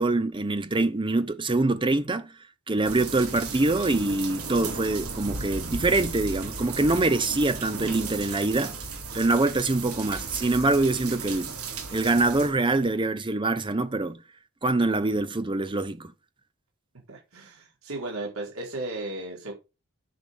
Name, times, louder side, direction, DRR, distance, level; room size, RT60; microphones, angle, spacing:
voice 1, 0.0-2.3 2.7-8.8 9.1-11.5 11.9-14.2 14.6-16.1, right 2 dB, 25° right, 0.7 m, -24 dB
sound 1, 2.8-12.5, right 4 dB, 85° right, 3.6 m, -35 dB
voice 2, 17.1-19.5, right 2 dB, 70° right, 4.4 m, -35 dB
10.0 x 6.3 x 5.4 m
head